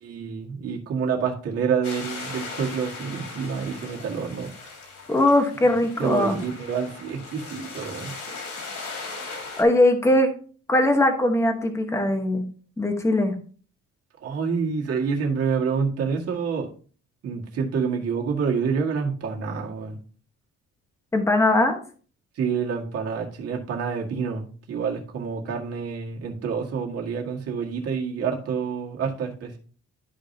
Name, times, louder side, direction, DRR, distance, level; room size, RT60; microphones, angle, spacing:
voice 1, 0.0-4.5 6.0-8.1 14.2-16.7 17.2-20.0 22.4-29.6, right 6 dB, 55° right, 0 dB, 1.9 m, -28 dB
sound 1, 1.8-9.6, left 3 dB, 85° left, 2.8 m, -38 dB
voice 2, 5.1-6.4 9.6-10.3 10.7-12.5 12.8-13.3 21.1-21.8, left 1 dB, 10° left, 5 dB, 1.0 m, -20 dB
12.5 x 4.9 x 2.8 m, 0.41 s
cardioid pair, 175°, 30 cm